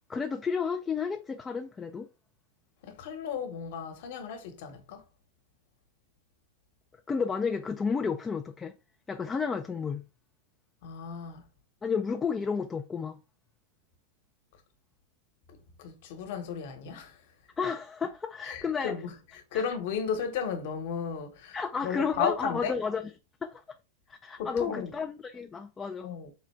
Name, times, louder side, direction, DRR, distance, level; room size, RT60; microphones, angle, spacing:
voice 1, 0.1-2.1 7.1-8.7 9.1-10.0 11.8-13.2 17.6-18.9 19.5-19.6 21.5-23.0 23.4-23.6 24.1-26.1, left 5 dB, 15° left, 0.3 m, -32 dB
voice 2, 2.8-5.0 10.8-11.5 15.5-17.2 18.4-22.7 24.4-24.9 26.0-26.3, left 7 dB, 60° left, 1.1 m, -34 dB
3.8 x 2.2 x 4.3 m
supercardioid pair, 145°, 0 cm